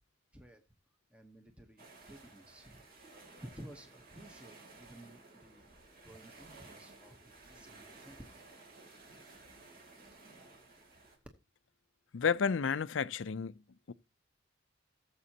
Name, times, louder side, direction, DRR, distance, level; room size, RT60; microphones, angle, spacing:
voice 1, 1.1-2.8 3.4-5.7 6.0-8.3, right 1 dB, 5° right, 1.0 m, -54 dB
sound 1, 1.8-11.2, right 3 dB, 55° right, 3.0 m, -56 dB
voice 2, 12.1-13.6 13.9-14.0, left 6 dB, 80° left, 0.5 m, -31 dB
17.5 x 7.5 x 2.8 m
head